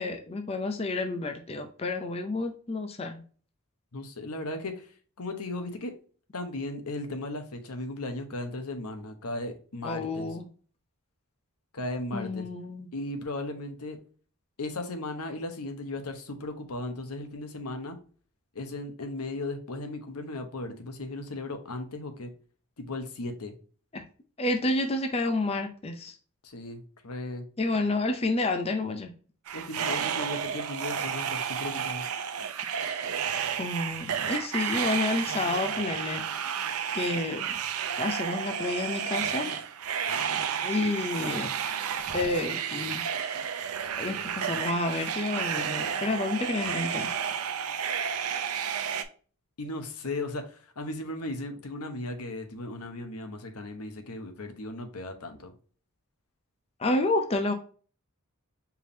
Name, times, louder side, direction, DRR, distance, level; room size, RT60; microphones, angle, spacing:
voice 1, 0.0-3.2 9.8-10.5 12.1-12.9 23.9-24.0 24.4-26.1 27.6-29.1 33.6-36.2 36.9-37.6 38.0-39.6 40.6-41.5 42.1-43.0 44.0-47.1 56.8-57.5, left 2 dB, 25° left, 6 dB, 0.5 m, -30 dB
voice 2, 3.9-4.9 5.2-5.9 6.3-10.3 11.7-12.5 12.9-14.0 14.6-18.0 18.5-22.3 22.8-23.5 26.4-27.4 29.5-32.0 37.0-37.4 49.6-55.5, left 2 dB, 85° left, 6 dB, 1.0 m, -36 dB
sound 1, 29.5-49.0, right 7 dB, 75° right, 0.6 m, -31 dB
4.6 x 3.5 x 2.6 m, 0.41 s
head